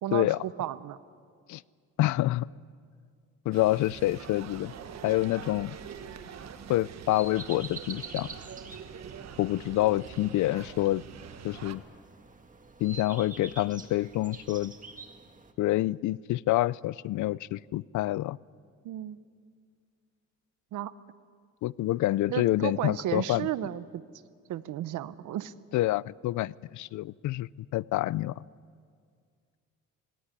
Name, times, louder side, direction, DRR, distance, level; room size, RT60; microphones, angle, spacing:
voice 1, 0.0-1.0 18.8-19.2 20.7-20.9 22.3-24.0 24.5-25.5, right 12 dB, 80° right, 16 dB, 0.9 m, -33 dB
voice 2, 2.0-2.5 3.5-4.7 5.0-5.8 6.7-8.3 9.4-11.0 11.4-11.8 12.8-14.7 15.6-18.4 21.6-23.5 25.7-28.4, left 16 dB, 75° left, 22 dB, 0.5 m, -27 dB
sound 1, 3.5-11.7, right 8 dB, 60° right, 1.3 m, -45 dB
sound 2, 4.9-15.5, right 4 dB, 25° right, 1.9 m, -48 dB
19.0 x 18.0 x 9.9 m, 2.1 s
cardioid pair, 90°, 30 cm